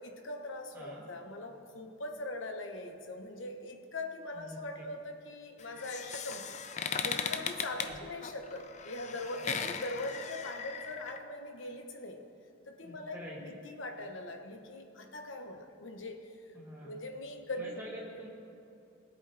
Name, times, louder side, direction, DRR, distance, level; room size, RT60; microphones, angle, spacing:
voice 1, 0.0-6.6 7.0-12.2 12.7-16.4 16.8-17.8, left 2 dB, 80° left, 4 dB, 1.1 m, -41 dB
voice 2, 0.7-1.0 4.3-4.6 7.8-8.0 12.8-13.5 16.5-17.0 17.6-18.3, left 1 dB, 10° right, -6 dB, 2.4 m, -46 dB
sound 1, 5.6-11.2, left 6 dB, 35° left, 0.5 m, -38 dB
20.0 x 8.3 x 3.4 m, 2.7 s
head